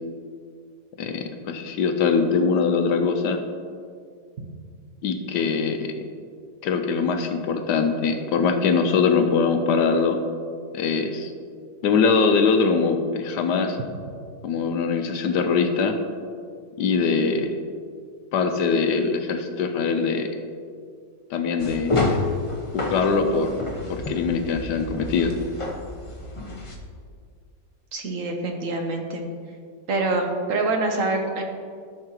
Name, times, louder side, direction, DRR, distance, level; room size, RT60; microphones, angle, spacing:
voice 1, 1.0-3.4 5.0-5.9 6.6-10.2 10.7-11.3 11.8-13.8 14.4-16.0 16.8-17.5 18.3-20.3 21.3-22.1 22.7-23.6 23.9-25.3, left 5 dB, 75° left, 6 dB, 1.2 m, -22 dB
sound 1, 21.6-26.7, left 2 dB, 40° left, 0.4 m, -29 dB
voice 2, 27.9-29.3 29.9-31.4, right 2 dB, 55° right, 3 dB, 1.1 m, -25 dB
13.0 x 6.5 x 3.0 m, 2.1 s
omnidirectional pair, 2.0 m